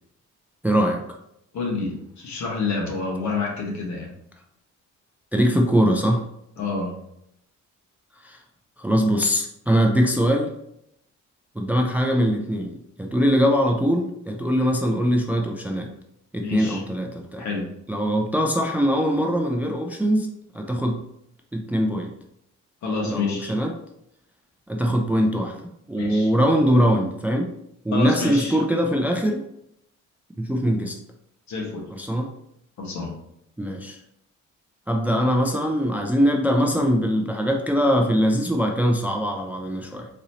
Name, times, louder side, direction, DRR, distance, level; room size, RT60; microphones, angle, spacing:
voice 1, 0.6-1.0 5.3-6.2 8.2-8.4 8.8-10.5 11.6-15.9 16.3-17.5 17.9-20.3 20.5-21.0 21.5-22.1 23.0-23.7 24.7-25.5 25.9-27.5 27.8-29.4 30.4-31.0 31.9-32.3 33.6-34.0 34.9-40.1, equal, 5° right, 3 dB, 0.3 m, -22 dB
voice 2, 1.5-4.1 6.6-6.9 16.4-16.8 17.4-17.6 22.8-23.5 25.9-26.3 27.9-28.6 31.5-31.9 32.8-33.1, left 3 dB, 70° left, -1 dB, 1.2 m, -28 dB
4.1 x 2.6 x 2.9 m, 0.77 s
cardioid pair, 90°, 30 cm